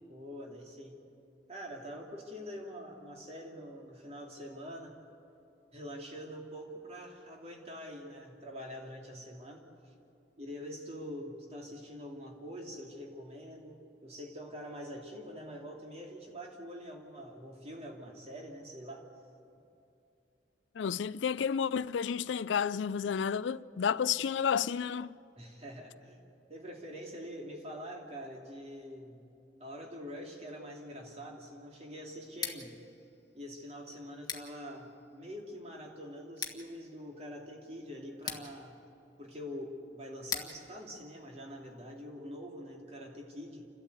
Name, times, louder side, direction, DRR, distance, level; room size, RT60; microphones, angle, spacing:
voice 1, 0.1-1.0 1.5-5.0 5.7-9.6 10.4-19.1 25.4-26.2 26.5-29.2 29.6-32.8 33.3-38.8 39.2-43.7, equal, 35° right, 2.9 m, -45 dB
voice 2, 20.8-25.1, left 7 dB, 80° left, 0.4 m, -31 dB
Scissors, 32.3-42.1, left 6 dB, 20° left, 1.5 m, -46 dB
29.0 x 13.0 x 8.3 m
head